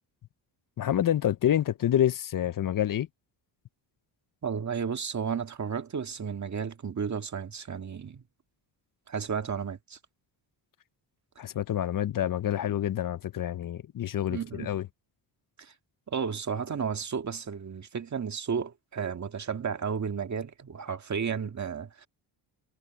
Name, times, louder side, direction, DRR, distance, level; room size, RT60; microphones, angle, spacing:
voice 1, 0.8-3.1 11.4-14.9, left 11 dB, 45° left, 0.7 m, -27 dB
voice 2, 4.4-8.2 9.1-10.0 14.3-14.7 15.6-15.7 16.1-22.1, right 6 dB, 35° right, 1.9 m, -33 dB
cardioid pair, 110°, 48 cm